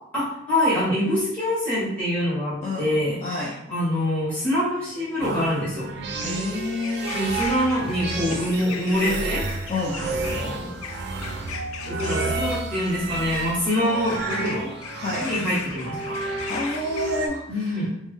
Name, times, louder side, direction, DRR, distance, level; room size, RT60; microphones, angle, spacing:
voice 1, 0.1-5.9 7.1-9.7 9.9-10.7 11.9-14.7 15.2-16.0 16.6-16.8 17.5-17.9, left 1 dB, 10° left, -10 dB, 1.4 m, -25 dB
voice 2, 2.6-3.5 6.2-7.1 9.7-10.0 14.9-15.3 16.5-17.7, left 2 dB, 30° left, -6 dB, 0.4 m, -29 dB
sound 1, 3.9-17.3, left 5 dB, 90° left, 0.4 m, -39 dB
sound 2, 5.2-17.3, right 3 dB, 50° right, 0.4 m, -31 dB
3.5 x 2.0 x 3.3 m, 0.77 s
head